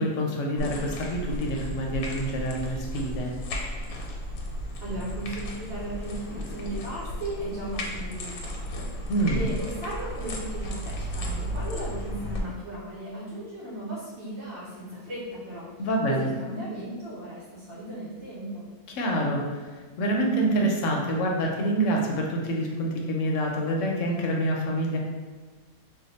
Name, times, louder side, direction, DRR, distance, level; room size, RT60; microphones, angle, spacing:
voice 1, 0.0-3.3 9.1-9.4 15.8-16.3 18.9-25.0, right 1 dB, 70° left, 0 dB, 0.8 m, -27 dB
sound 1, 0.6-12.4, equal, 85° left, 1.1 m, -34 dB
voice 2, 4.8-15.7 16.1-18.7, right 1 dB, 55° right, -10 dB, 1.1 m, -36 dB
2.6 x 2.2 x 4.0 m, 1.4 s
omnidirectional pair, 1.5 m